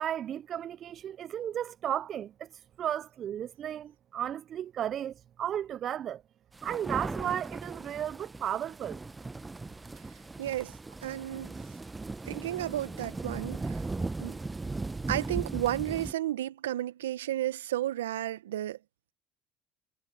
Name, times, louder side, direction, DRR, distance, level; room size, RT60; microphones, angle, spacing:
voice 1, 0.0-2.5 2.8-6.2 6.6-9.0, right 10 dB, 50° right, 0.6 m, -34 dB
sound 1, 6.5-16.1, right 3 dB, 20° right, 0.9 m, -38 dB
voice 2, 10.4-10.7 11.0-11.5 12.3-13.8 14.2-14.4 15.1-18.8, right 13 dB, 85° right, 1.2 m, -32 dB
hypercardioid pair, 60°, 0 cm